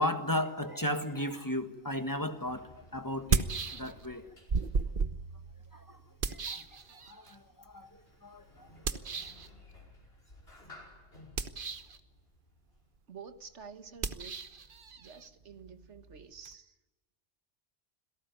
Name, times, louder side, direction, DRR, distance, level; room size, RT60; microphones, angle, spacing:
voice 1, 0.0-3.5 3.8-4.2 5.7-6.0 6.3-6.6 7.1-7.9 8.2-9.0, left 1 dB, 15° left, 7 dB, 1.6 m, -35 dB
Sliding door, 2.1-13.2, left 2 dB, 60° left, 5.6 m, -58 dB
sound 1, 2.1-2.2 3.1-4.2 4.5-7.3 8.8-9.5 11.2-12.0 14.0-16.5, right 5 dB, 50° right, 1.2 m, -34 dB
voice 2, 13.1-14.4 15.0-16.7, right 6 dB, 85° right, 10 dB, 1.7 m, -49 dB
27.0 x 18.0 x 9.6 m, 1.1 s
omnidirectional pair, 1.2 m